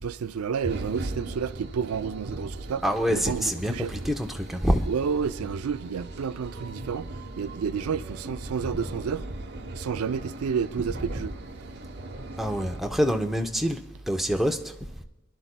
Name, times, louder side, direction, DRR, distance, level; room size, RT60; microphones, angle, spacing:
voice 1, 0.0-3.9 4.9-7.1 7.4-9.3 9.7-11.3, right 6 dB, 85° right, 0.4 m, -30 dB
sound 1, 0.6-12.8, right 2 dB, 50° right, 1.0 m, -39 dB
voice 2, 2.8-4.8 11.0-11.2 12.4-13.8 14.1-14.6, equal, ahead, 0.6 m, -26 dB
22.5 x 11.0 x 2.2 m
head